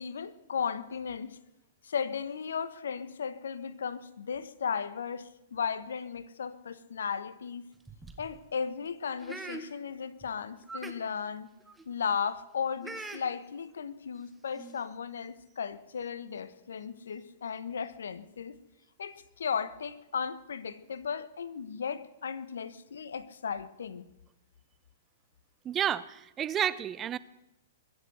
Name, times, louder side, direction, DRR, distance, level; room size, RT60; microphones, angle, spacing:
voice 1, 0.0-1.4 1.8-7.6 8.2-11.5 11.9-18.6 19.0-24.1, left 6 dB, 75° left, 16 dB, 1.1 m, -35 dB
sound 1, 7.7-8.3 9.2-9.6 10.2-10.3 10.6-10.9 11.6-11.8 12.8-13.2 14.1-14.2 14.5-14.7, right 3 dB, 10° right, 1.9 m, -42 dB
voice 2, 25.6-27.2, right 10 dB, 25° right, 19 dB, 0.6 m, -30 dB
23.0 x 8.0 x 7.9 m, 0.92 s
hypercardioid pair, 115°, 0 cm